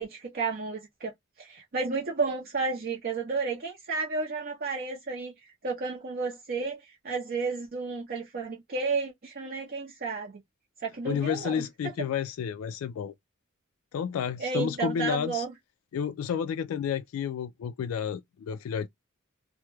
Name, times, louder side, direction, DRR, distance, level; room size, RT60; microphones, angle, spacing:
voice 1, 0.0-10.4 10.8-12.1 14.4-15.5, right 4 dB, 45° right, 0.5 m, -32 dB
voice 2, 11.0-13.1 13.9-15.4 15.9-18.9, left 8 dB, 90° left, 0.3 m, -31 dB
2.3 x 2.0 x 2.9 m
head